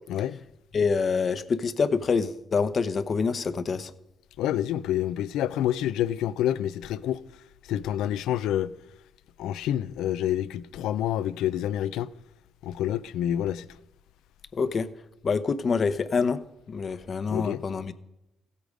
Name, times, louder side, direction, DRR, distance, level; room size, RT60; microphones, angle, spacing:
voice 1, 0.1-0.4 4.4-7.2 7.6-8.7 9.4-12.1 12.6-13.8 17.3-17.6, left 11 dB, 90° left, 0.5 m, -28 dB
voice 2, 0.7-3.9 14.5-14.9 15.2-16.4 16.7-17.9, left 5 dB, 45° left, 0.8 m, -26 dB
16.0 x 8.4 x 5.1 m
cardioid pair, 90°, 0 cm